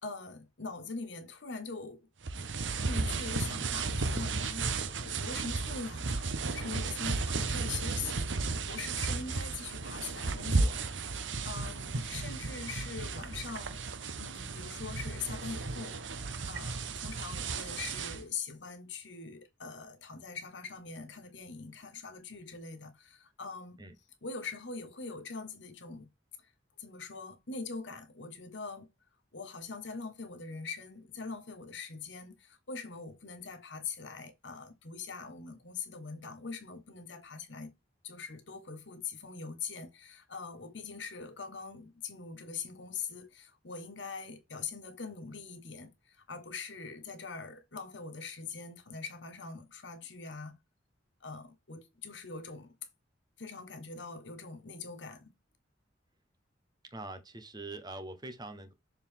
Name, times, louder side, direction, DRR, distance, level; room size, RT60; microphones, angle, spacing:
voice 1, 0.0-2.1 2.8-10.8 11.4-13.8 14.2-23.8 24.2-26.1 26.8-28.9 29.3-37.7 38.0-50.6 51.2-52.7 53.4-55.3, left 4 dB, 75° left, 1.4 m, -43 dB
sound 1, 2.2-18.2, right 3 dB, 80° right, 0.9 m, -34 dB
voice 2, 56.9-58.7, right 2 dB, 20° right, 1.1 m, -43 dB
7.0 x 3.9 x 3.6 m
head